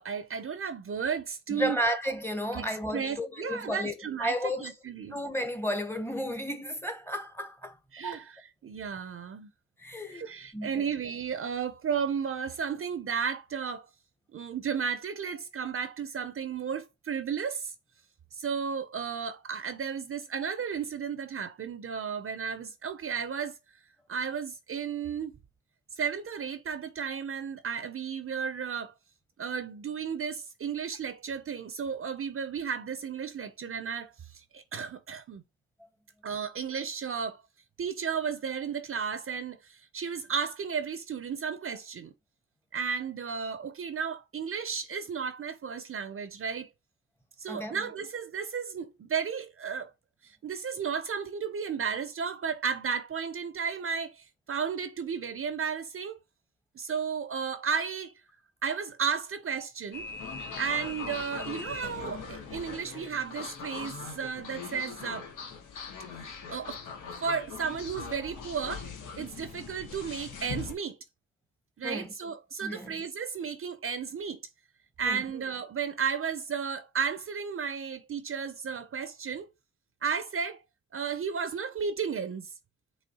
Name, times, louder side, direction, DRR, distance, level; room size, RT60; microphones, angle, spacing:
voice 1, 0.0-1.8 2.5-5.2 7.9-9.5 10.1-13.9 14.3-17.7 18.3-23.6 24.1-25.4 25.9-28.9 29.4-35.4 36.2-37.4 37.8-42.1 42.7-46.7 47.4-49.9 50.2-56.2 56.7-58.1 58.6-60.1 60.6-65.3 66.5-66.8 67.2-68.9 69.2-71.0 71.8-74.4 75.0-79.5 80.0-80.6 80.9-82.5, right 6 dB, 50° right, 0.5 m, -33 dB
voice 2, 1.5-4.7 5.1-7.8 8.0-8.2 9.8-10.8 47.5-47.8 71.8-72.1 72.6-72.9 75.0-75.2, equal, 10° left, 0.8 m, -33 dB
sound 1, 59.9-70.7, left 5 dB, 90° left, 0.9 m, -41 dB
5.4 x 3.1 x 2.8 m
cardioid pair, 65°, 29 cm